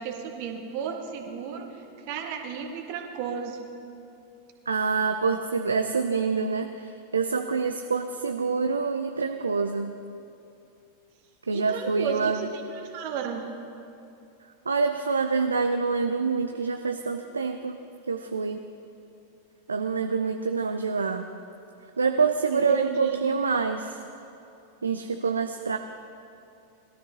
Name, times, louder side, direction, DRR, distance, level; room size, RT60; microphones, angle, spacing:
voice 1, 0.0-3.6 11.5-13.5 22.5-23.2, right 7 dB, 45° right, 3 dB, 1.5 m, -33 dB
voice 2, 4.7-9.9 11.5-12.4 14.7-17.8 18.1-18.6 19.7-21.3 22.0-24.0 24.8-25.8, right 4 dB, 75° right, 6 dB, 0.5 m, -26 dB
20.5 x 12.5 x 2.8 m, 2.7 s
figure-of-eight pair, 90°, 0 cm